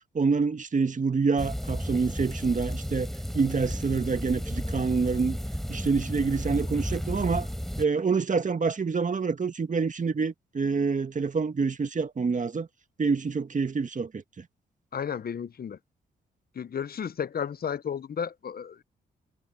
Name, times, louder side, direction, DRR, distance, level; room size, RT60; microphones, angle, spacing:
voice 1, 0.1-5.4 5.7-7.5 7.8-12.7 13.0-14.2, right 4 dB, 40° right, 1.7 m, -27 dB
sound 1, 1.4-7.8, equal, ahead, 5.6 m, -33 dB
voice 2, 14.9-15.8 16.5-18.8, left 7 dB, 50° left, 1.0 m, -33 dB
supercardioid pair, 50°, 20 cm